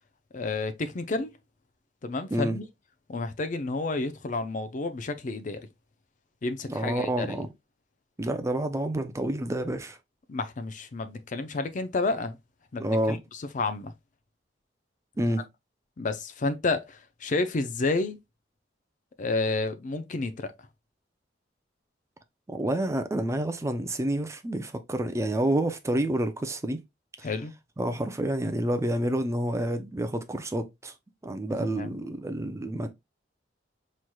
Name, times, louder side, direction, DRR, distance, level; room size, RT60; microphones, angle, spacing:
voice 1, 0.3-1.3 2.0-2.6 3.1-5.6 6.4-7.5 10.3-12.4 12.7-13.2 13.5-13.9 16.0-18.2 19.2-20.5 27.2-27.5 31.7-32.0, left 3 dB, 45° left, 0.5 m, -30 dB
voice 2, 6.7-7.5 8.2-10.0 12.8-13.2 15.2-15.5 22.5-26.8 27.2-27.3 27.8-30.9 31.2-32.9, right 1 dB, 15° right, 0.4 m, -28 dB
5.7 x 3.2 x 2.2 m
head